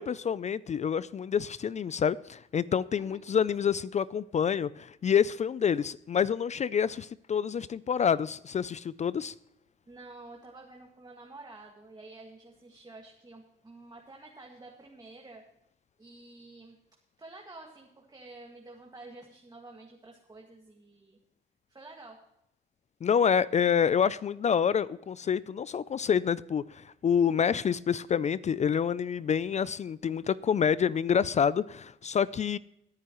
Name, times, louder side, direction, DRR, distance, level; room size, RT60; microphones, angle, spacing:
voice 1, 0.0-9.3 23.0-32.6, left 7 dB, 35° left, 0.4 m, -27 dB
voice 2, 9.9-15.4 16.0-16.8 17.2-21.2 21.7-22.2, right 2 dB, 20° right, 1.9 m, -49 dB
20.5 x 9.6 x 3.0 m
cardioid pair, 90°, 20 cm